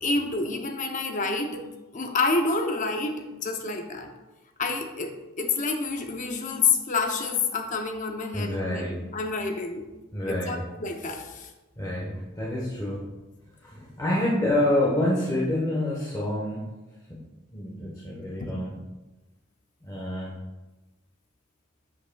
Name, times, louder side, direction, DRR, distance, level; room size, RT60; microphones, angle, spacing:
voice 1, 0.0-4.1 4.6-9.8 10.3-11.5 18.4-18.5, left 4 dB, 35° left, 4 dB, 0.6 m, -28 dB
voice 2, 8.3-9.0 10.1-10.6 11.8-13.0 13.6-16.7 17.1-17.2 17.5-18.7 19.8-20.4, left 1 dB, 15° left, -5 dB, 1.0 m, -27 dB
7.6 x 7.5 x 2.2 m, 1.1 s
head